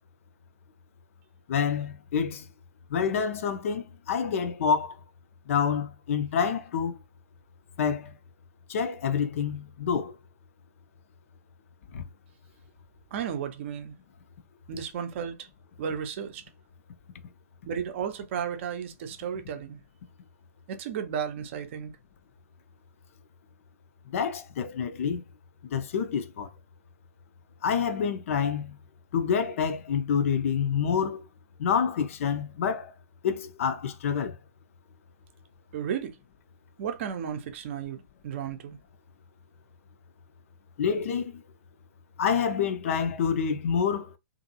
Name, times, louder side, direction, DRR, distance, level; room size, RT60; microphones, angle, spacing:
voice 1, 1.5-2.5 2.9-5.0 5.5-7.0 7.8-8.1 8.7-10.1 11.9-12.1 24.1-25.2 25.6-26.5 27.6-28.8 29.1-31.2 31.6-32.9 33.2-34.4 40.8-41.4 42.2-44.1, left 7 dB, 50° left, 0.4 m, -27 dB
voice 2, 13.1-13.9 14.7-15.5 15.8-16.4 17.7-19.8 20.7-21.9 35.7-36.1 36.8-38.8, right 8 dB, 45° right, 0.6 m, -33 dB
2.6 x 2.5 x 2.6 m
figure-of-eight pair, 115°, 9 cm